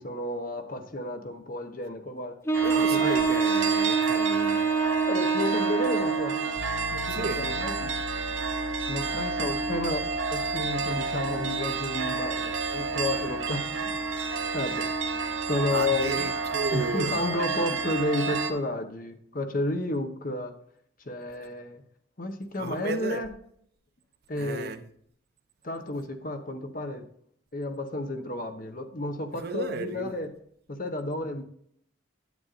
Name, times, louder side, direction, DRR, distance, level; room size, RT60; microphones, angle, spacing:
voice 1, 0.0-2.4 2.9-3.1 5.1-6.5 6.9-7.9 8.9-10.0 10.3-14.0 14.5-14.9 15.5-16.3 16.7-20.5 21.1-21.8 22.2-23.3 24.3-24.7 25.6-27.0 27.5-30.3 30.8-31.4, left 2 dB, 40° left, 0.9 m, -31 dB
Wind instrument woodwind instrument, 2.5-6.6, right 5 dB, 10° left, 0.5 m, -25 dB
sound 1, 2.5-18.5, right 4 dB, 70° right, 1.0 m, -30 dB
voice 2, 2.6-4.6 7.1-7.5 15.7-17.2 22.6-23.2 24.4-24.9 29.3-30.2, right 3 dB, 50° right, 0.6 m, -33 dB
Piano, 6.5-17.4, left 5 dB, 85° right, 1.4 m, -45 dB
9.4 x 8.8 x 2.5 m
head